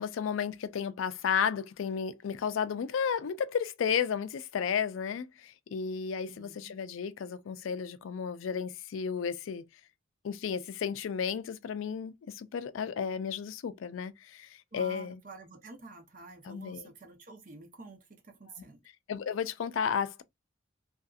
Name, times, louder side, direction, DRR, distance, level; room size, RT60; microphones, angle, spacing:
voice 1, 0.0-9.6 10.2-15.2 16.4-16.9 18.5-18.6 19.1-20.2, left 7 dB, 80° left, 0.4 m, -33 dB
voice 2, 6.3-6.8 14.7-18.8, right 3 dB, 45° right, 0.7 m, -49 dB
2.6 x 2.4 x 2.3 m
head